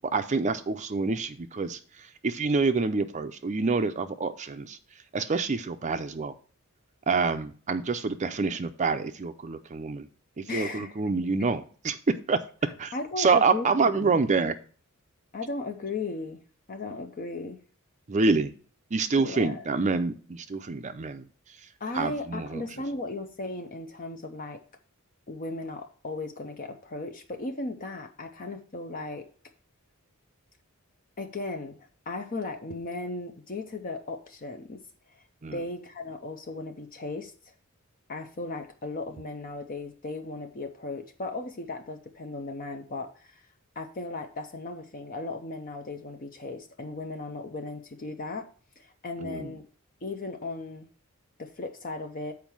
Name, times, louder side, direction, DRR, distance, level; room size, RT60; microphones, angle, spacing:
voice 1, 0.1-6.3 7.1-10.1 10.4-12.0 12.3-12.4 12.8-14.6 18.1-18.5 18.9-21.7 21.9-22.6 35.4-35.6 49.2-49.5, right 4 dB, 35° right, 9 dB, 0.5 m, -27 dB
voice 2, 10.5-10.9 11.4-11.5 12.9-13.7 14.0-14.1 15.3-16.4 16.7-17.6 19.2-19.6 21.8-24.6 25.3-29.2 31.2-34.8 35.5-37.5 38.1-43.5 43.8-48.5 48.8-49.6 50.0-50.9 51.4-52.3, left 2 dB, 40° left, 5 dB, 0.7 m, -36 dB
7.2 x 4.7 x 6.0 m, 0.42 s
head